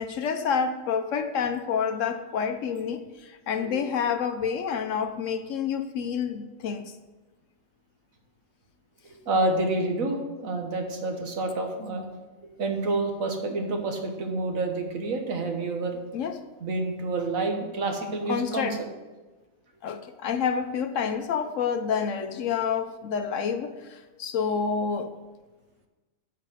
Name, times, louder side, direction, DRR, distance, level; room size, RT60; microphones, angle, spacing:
voice 1, 0.0-6.9 16.1-16.4 18.3-18.8 19.8-25.1, left 6 dB, 70° left, 9 dB, 0.9 m, -28 dB
voice 2, 9.0-12.0 12.4-16.0 16.6-18.8, right 2 dB, 70° right, 4 dB, 1.6 m, -28 dB
9.8 x 4.7 x 6.3 m, 1.2 s
omnidirectional pair, 1.5 m